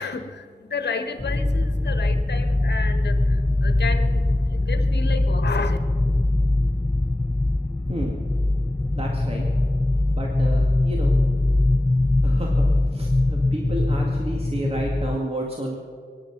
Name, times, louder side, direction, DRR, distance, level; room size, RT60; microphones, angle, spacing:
voice 1, 0.0-5.8, left 4 dB, 70° left, 8 dB, 1.4 m, -32 dB
sound 1, 1.2-15.2, left 2 dB, 10° left, 0.3 m, -22 dB
voice 2, 7.9-8.2 8.9-9.5 10.1-11.1 12.2-12.6 12.9-15.8, right 1 dB, 35° right, -1 dB, 2.2 m, -31 dB
23.0 x 10.5 x 6.0 m, 2.2 s
wide cardioid pair, 85°, 18 cm